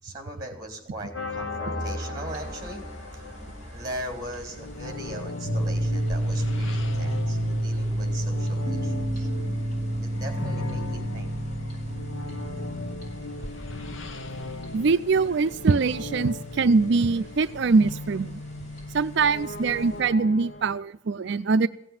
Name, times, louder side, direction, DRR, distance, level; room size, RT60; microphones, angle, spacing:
voice 1, 0.0-9.3 10.0-11.3 18.9-19.0, right 1 dB, 20° right, 5 dB, 3.4 m, -38 dB
sound 1, 1.1-20.8, left 2 dB, 75° left, 1.0 m, -38 dB
sound 2, 2.3-20.0, equal, 55° left, 6.4 m, -46 dB
sound 3, 5.4-14.2, right 1 dB, 35° right, 0.9 m, -29 dB
voice 2, 14.7-18.4 18.9-21.7, right 4 dB, 60° right, 11 dB, 0.4 m, -23 dB
16.0 x 7.5 x 9.7 m, 0.76 s
head